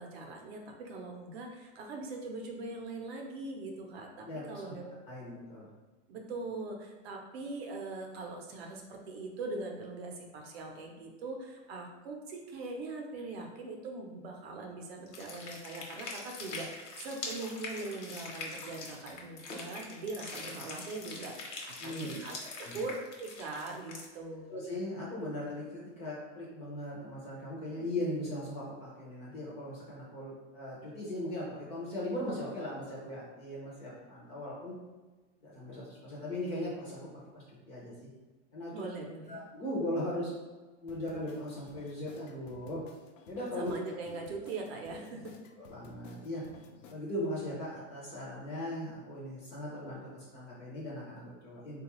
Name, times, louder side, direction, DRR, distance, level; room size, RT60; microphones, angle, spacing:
voice 1, 0.0-4.8 6.1-24.6 38.7-39.4 43.6-45.5, right 3 dB, 55° right, 2 dB, 0.7 m, -41 dB
voice 2, 4.2-5.7 21.8-22.2 22.6-22.8 24.5-34.7 35.4-37.0 37.3-38.1 38.5-38.7 39.3-40.3 40.8-42.8 43.3-43.7 45.6-46.4 46.9-51.8, left 1 dB, 20° left, -6 dB, 0.5 m, -39 dB
sound 1, 15.1-24.0, left 3 dB, 70° left, 1.0 m, -43 dB
sound 2, 40.9-46.9, left 4 dB, 85° left, 0.6 m, -55 dB
3.7 x 2.3 x 2.9 m, 1.2 s
supercardioid pair, 165°, 37 cm